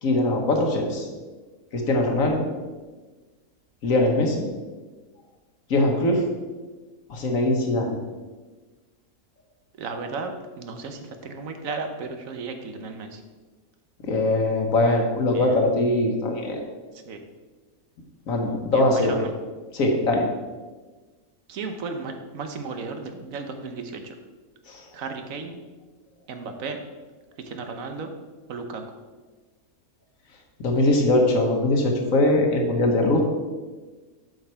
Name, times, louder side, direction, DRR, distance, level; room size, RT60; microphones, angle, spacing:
voice 1, 0.0-1.1 1.7-2.5 3.8-4.4 5.7-6.2 7.1-8.0 14.0-16.6 18.3-19.2 19.7-20.2 24.7-24.8 30.6-33.2, left 2 dB, 65° left, 2 dB, 1.5 m, -21 dB
voice 2, 9.8-13.2 15.3-15.6 16.9-17.2 18.7-19.3 21.5-24.2 24.9-25.6 26.3-26.8 27.4-28.1 28.5-28.8, right 4 dB, 70° right, 6 dB, 1.1 m, -34 dB
7.7 x 5.9 x 4.5 m, 1.3 s
omnidirectional pair, 1.5 m